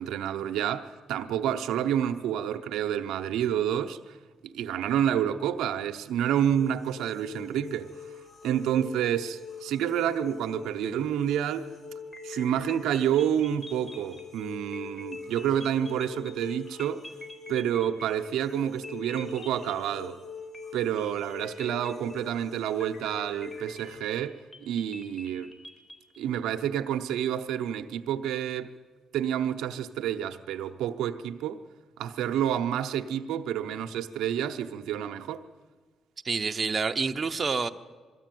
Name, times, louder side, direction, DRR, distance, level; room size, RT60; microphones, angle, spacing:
voice 1, 0.0-4.2 4.4-7.9 8.4-11.7 12.2-17.1 17.5-20.2 20.7-25.5 26.2-28.7 29.1-31.6 32.0-35.5, right 10 dB, 85° right, 0.8 m, -29 dB
sound 1, 6.4-24.0, left 5 dB, 45° left, 5.5 m, -44 dB
sound 2, 12.1-18.5 18.8-20.2 20.5-22.4 22.8-26.2, left 1 dB, 25° left, 4.1 m, -48 dB
voice 2, 36.2-37.7, right 4 dB, 35° right, 0.9 m, -28 dB
22.0 x 14.0 x 9.2 m
cardioid pair, 90°, 0 cm